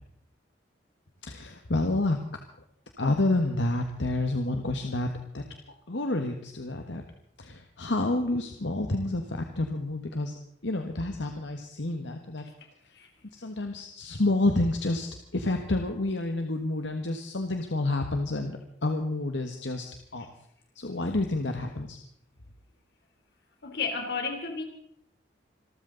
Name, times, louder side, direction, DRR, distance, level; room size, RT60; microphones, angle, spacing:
voice 1, 1.2-2.2 3.0-7.0 7.4-10.3 10.6-12.5 13.3-15.1 15.3-19.9 20.1-20.3 20.7-22.0, left 2 dB, 80° left, 5 dB, 1.5 m, -29 dB
voice 2, 23.6-24.6, left 4 dB, 60° left, 4 dB, 3.4 m, -32 dB
26.5 x 13.5 x 4.0 m, 0.69 s
head